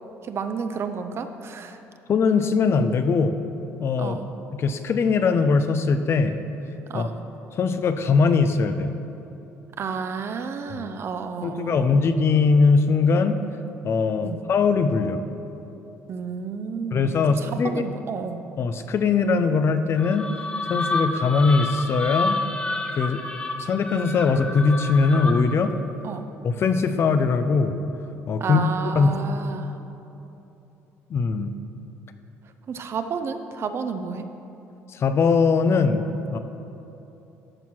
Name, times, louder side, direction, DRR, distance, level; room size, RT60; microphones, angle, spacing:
voice 1, 0.2-1.8 4.0-4.3 6.9-7.2 9.8-11.9 14.2-14.4 16.1-18.4 26.0-26.3 28.4-29.7 32.7-34.3, right 5 dB, 50° right, 8 dB, 0.7 m, -31 dB
voice 2, 2.1-3.4 3.8-4.2 4.6-6.4 6.9-7.1 7.6-8.9 10.7-10.9 11.4-13.4 13.8-15.2 16.9-17.9 18.6-20.3 20.7-22.4 23.0-23.2 23.6-25.7 26.4-27.8 28.3-28.6 28.9-29.2 31.1-31.5 34.9-36.0 36.3-36.4, left 4 dB, 50° left, 9 dB, 0.6 m, -21 dB
sound 1, 19.9-25.7, left 2 dB, 20° left, 0.8 m, -29 dB
13.0 x 4.5 x 6.1 m, 3.0 s
cardioid pair, 90°, 6 cm